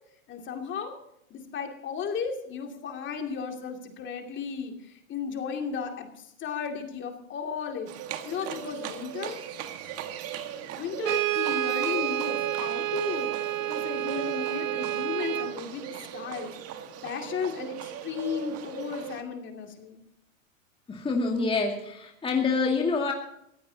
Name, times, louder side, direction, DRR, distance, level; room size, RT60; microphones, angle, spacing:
voice 1, 0.3-0.9 1.3-7.9 8.2-9.4 10.8-13.3 13.6-15.8 16.1-16.5 17.0-20.0, left 6 dB, 30° left, 3 dB, 2.5 m, -35 dB
Livestock farm animals working animals, 7.9-19.2, right 10 dB, 35° right, 1.7 m, -39 dB
Brass instrument, 11.0-15.6, right 14 dB, 75° right, 1.1 m, -29 dB
voice 2, 20.9-23.1, left 4 dB, 15° left, 1 dB, 2.3 m, -26 dB
23.0 x 16.0 x 2.8 m, 0.76 s
hypercardioid pair, 110°, 40 cm